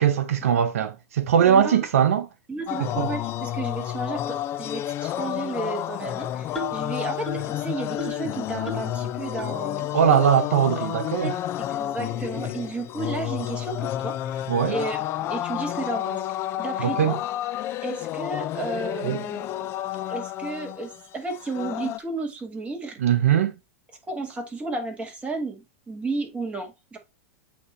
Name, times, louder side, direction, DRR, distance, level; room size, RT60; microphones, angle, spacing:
voice 1, 0.0-2.3 2.8-3.1 9.9-11.3 14.5-14.7 16.8-17.1 19.0-19.2 23.0-23.5, right 8 dB, 80° right, 0.8 m, -21 dB
voice 2, 1.4-1.8 2.5-9.9 11.2-16.2 16.6-17.2 17.8-19.5 20.1-23.0 24.1-27.0, right 3 dB, 15° right, 1.9 m, -33 dB
sound 1, 2.7-22.0, left 13 dB, 35° left, 0.4 m, -30 dB
sound 2, 6.5-6.9 7.3-7.5 8.0-8.3 8.7-8.9 9.4-9.5 10.1-10.2 10.8-10.9 11.6-11.7 12.3-12.5, right 1 dB, 5° left, 1.3 m, -35 dB
8.5 x 3.0 x 4.3 m
hypercardioid pair, 120°, 8 cm